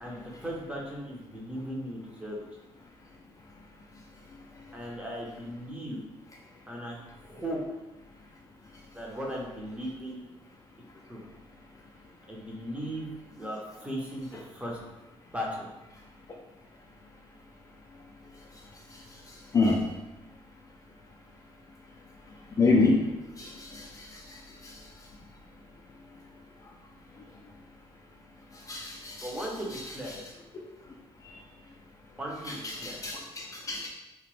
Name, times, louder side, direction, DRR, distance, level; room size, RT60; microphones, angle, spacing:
voice 1, 0.0-2.4 4.7-6.0 6.7-7.6 8.9-10.2 11.1-11.2 12.3-14.8 15.3-15.7 29.2-30.1 32.2-33.0, equal, 10° right, -3 dB, 0.6 m, -37 dB
voice 2, 22.6-23.0 23.4-24.2 24.6-24.7 28.7-29.3 29.7-29.8 30.1-30.2 32.5-33.9, left 3 dB, 30° left, -1 dB, 0.3 m, -27 dB
2.9 x 2.1 x 3.0 m, 1.0 s
cardioid pair, 120°, 11 cm